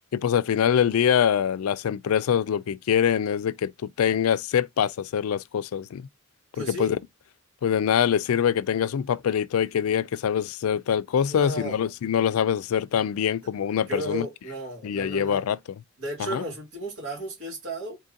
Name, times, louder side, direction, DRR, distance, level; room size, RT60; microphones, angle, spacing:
voice 1, 0.1-3.7 4.0-6.1 6.6-7.0 7.6-14.3 14.8-15.6 16.2-16.4, left 8 dB, 90° left, 0.3 m, -24 dB
voice 2, 6.5-6.9 11.3-11.8 13.9-15.5 16.0-18.0, right 1 dB, 70° right, 2.9 m, -34 dB
4.3 x 3.7 x 2.7 m
head